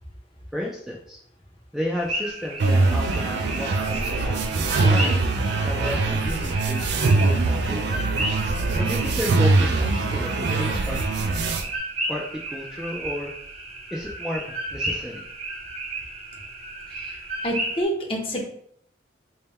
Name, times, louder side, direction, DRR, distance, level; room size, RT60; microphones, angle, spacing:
voice 1, 0.5-1.2 1.7-8.0 8.8-11.0 12.1-13.3 13.9-15.3, left 1 dB, ahead, -3 dB, 0.3 m, -33 dB
sound 1, 2.0-17.8, right 1 dB, 35° right, 0.7 m, -34 dB
sound 2, 2.6-11.6, right 3 dB, 75° right, 0.4 m, -22 dB
voice 2, 17.4-18.5, equal, 30° left, 0 dB, 0.7 m, -27 dB
3.5 x 2.2 x 4.1 m, 0.67 s
head